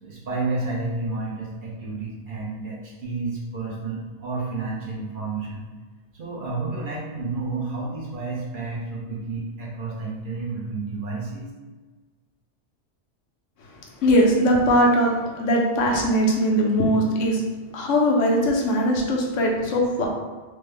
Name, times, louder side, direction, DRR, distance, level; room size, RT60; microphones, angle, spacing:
voice 1, 0.0-5.7 6.1-11.5, right 3 dB, 55° right, -5 dB, 0.7 m, -30 dB
voice 2, 14.0-15.1 15.4-17.4 17.7-20.1, equal, 80° left, -1 dB, 1.0 m, -20 dB
3.2 x 2.1 x 3.4 m, 1.3 s
omnidirectional pair, 1.3 m